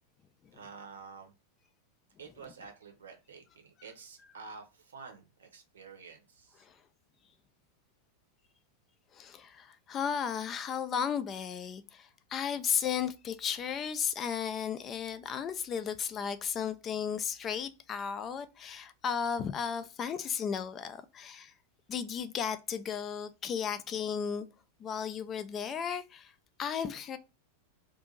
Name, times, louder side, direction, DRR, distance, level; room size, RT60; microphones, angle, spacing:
voice 1, 0.5-1.3 2.2-6.7, right 5 dB, 65° right, 0.8 m, -49 dB
voice 2, 9.1-21.5 21.9-24.5 24.8-26.3 26.6-27.2, left 7 dB, 25° left, 0.3 m, -34 dB
2.6 x 2.5 x 3.8 m
figure-of-eight pair, 90°, 0 cm